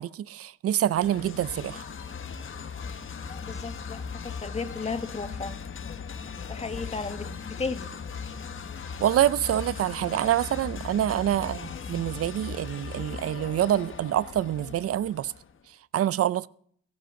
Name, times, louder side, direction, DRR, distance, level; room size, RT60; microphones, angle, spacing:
voice 1, 0.0-1.9 9.0-15.3 15.9-16.5, right 12 dB, 50° right, 0.5 m, -26 dB
sound 1, 0.9-15.6, left 6 dB, 40° left, 1.3 m, -38 dB
voice 2, 3.3-5.6 6.5-7.9, left 4 dB, 20° left, 1.4 m, -35 dB
16.0 x 15.0 x 3.8 m
cardioid pair, 90°, 30 cm